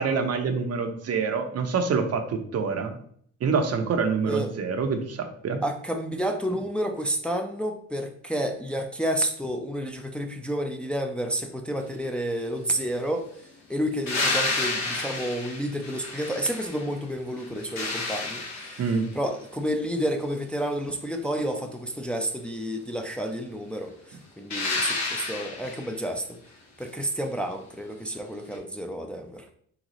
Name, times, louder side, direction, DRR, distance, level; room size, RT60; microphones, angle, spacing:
voice 1, 0.0-3.0 3.4-5.6 18.8-19.1, right 5 dB, 55° right, 6 dB, 0.7 m, -26 dB
voice 2, 5.6-13.3 13.7-18.8 19.1-26.4 26.8-29.5, equal, 5° left, 3 dB, 0.5 m, -30 dB
sound 1, 14.1-17.0 17.4-19.1 24.5-25.9 28.5-28.6, left 3 dB, 65° left, 1.2 m, -30 dB
3.9 x 3.9 x 3.0 m, 0.63 s
cardioid pair, 90°, 30 cm